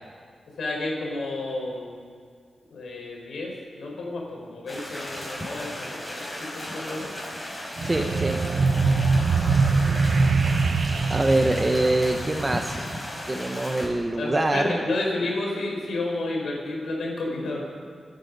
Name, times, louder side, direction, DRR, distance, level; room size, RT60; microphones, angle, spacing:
voice 1, 0.6-1.9 2.7-7.2 9.8-9.9 14.2-17.6, left 2 dB, 85° left, -1 dB, 4.7 m, -31 dB
sound 1, 4.7-13.9, left 1 dB, 15° left, 5.6 m, -35 dB
voice 2, 7.8-8.4 11.1-12.8 13.3-14.8, right 1 dB, 25° right, 4 dB, 0.8 m, -24 dB
sound 2, 7.8-12.7, right 4 dB, 60° right, 0.9 m, -23 dB
26.5 x 9.6 x 5.3 m, 2.1 s
wide cardioid pair, 95°, 0 cm